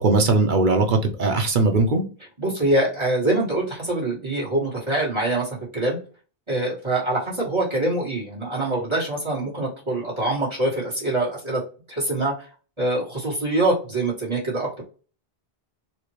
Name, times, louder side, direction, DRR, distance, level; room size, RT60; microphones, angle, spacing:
voice 1, 0.0-2.0, right 3 dB, 55° right, 4 dB, 0.8 m, -19 dB
voice 2, 2.4-6.0 6.5-11.6 11.9-12.3 12.8-14.8, right 2 dB, 25° right, -4 dB, 1.6 m, -24 dB
4.2 x 2.5 x 3.1 m, 0.37 s
omnidirectional pair, 1.1 m